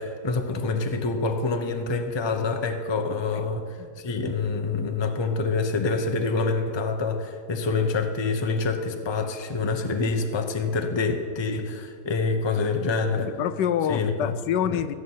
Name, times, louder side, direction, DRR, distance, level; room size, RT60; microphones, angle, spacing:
voice 1, 0.0-13.3 13.9-14.3 14.6-14.8, left 4 dB, 20° left, 5 dB, 0.7 m, -26 dB
voice 2, 13.2-14.9, left 9 dB, 80° left, 12 dB, 1.3 m, -26 dB
16.0 x 6.4 x 9.3 m, 2.1 s
omnidirectional pair, 1.9 m